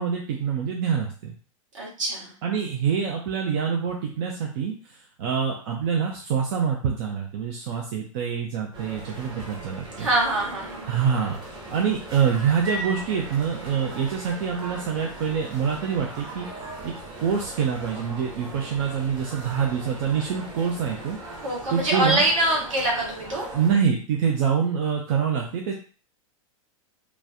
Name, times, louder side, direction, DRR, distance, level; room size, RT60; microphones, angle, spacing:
voice 1, 0.0-1.3 2.4-10.1 10.9-11.4 11.7-16.5 16.8-16.9 17.2-21.2 21.7-22.2 23.5-25.7, right 7 dB, 40° right, 0 dB, 0.5 m, -25 dB
voice 2, 1.7-2.3 10.0-10.9 21.4-23.5, right 1 dB, 65° right, -3 dB, 1.4 m, -24 dB
sound 1, 8.7-23.8, right 1 dB, 25° right, 0.9 m, -39 dB
3.1 x 2.2 x 2.5 m, 0.39 s
figure-of-eight pair, 100°, 18 cm